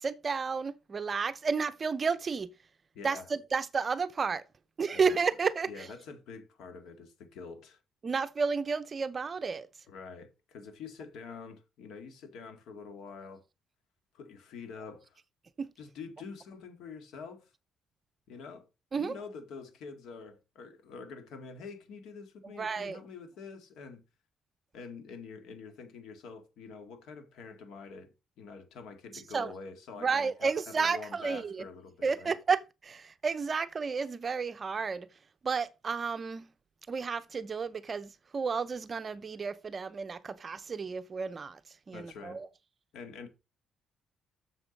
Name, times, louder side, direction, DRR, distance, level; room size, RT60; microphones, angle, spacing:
voice 1, 0.0-2.5 3.0-4.4 4.8-5.9 8.0-9.7 15.6-15.7 18.9-19.1 22.4-23.0 29.3-29.5 30.0-31.6 32.0-35.1 35.4-36.5 36.9-41.6 41.9-42.5, right 5 dB, 30° right, 0.6 m, -32 dB
voice 2, 2.9-3.3 4.9-5.2 5.7-7.8 9.9-13.4 14.1-15.2 15.8-17.5 18.3-18.7 18.9-24.0 24.7-32.3 41.9-42.4 42.9-43.3, left 5 dB, 80° left, 2.0 m, -46 dB
7.1 x 7.0 x 5.2 m
cardioid pair, 145°, 0 cm